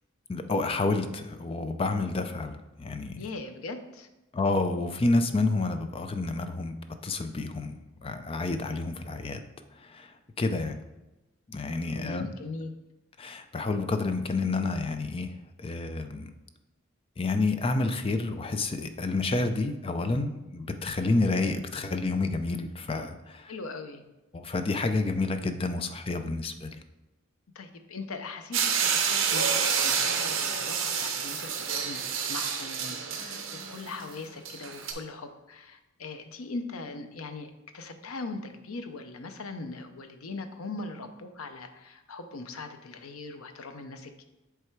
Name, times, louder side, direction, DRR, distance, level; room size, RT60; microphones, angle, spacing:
voice 1, 0.3-3.2 4.3-6.8 7.0-7.7 8.0-9.4 9.8-10.1 10.4-10.8 11.5-12.3 13.2-15.3 15.6-16.3 17.2-23.5 24.3-26.7, left 3 dB, 25° left, 8 dB, 0.4 m, -29 dB
voice 2, 3.2-4.1 11.9-12.7 23.5-24.0 27.5-44.2, left 3 dB, 85° left, 7 dB, 0.7 m, -40 dB
sound 1, 28.5-34.9, right 7 dB, 65° right, 0.8 m, -29 dB
7.8 x 3.4 x 4.5 m, 1.0 s
head